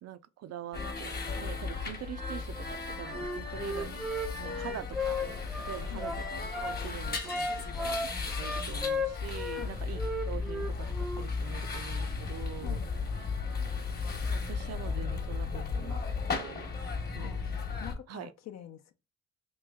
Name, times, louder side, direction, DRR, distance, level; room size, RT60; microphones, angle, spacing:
voice 1, 0.0-5.2 5.6-10.9 11.2-12.8 14.3-16.0 16.3-16.7 17.1-17.4 18.1-18.3, right 10 dB, 55° right, 0.5 m, -44 dB
sound 1, 0.7-17.9, left 4 dB, 30° left, 1.0 m, -35 dB
Wind instrument woodwind instrument, 3.1-6.8 7.2-9.7 10.0-11.3, left 2 dB, ahead, 0.4 m, -35 dB
voice 2, 17.8-18.9, left 12 dB, 60° left, 0.6 m, -46 dB
3.1 x 3.1 x 3.5 m
cardioid pair, 90°, 30 cm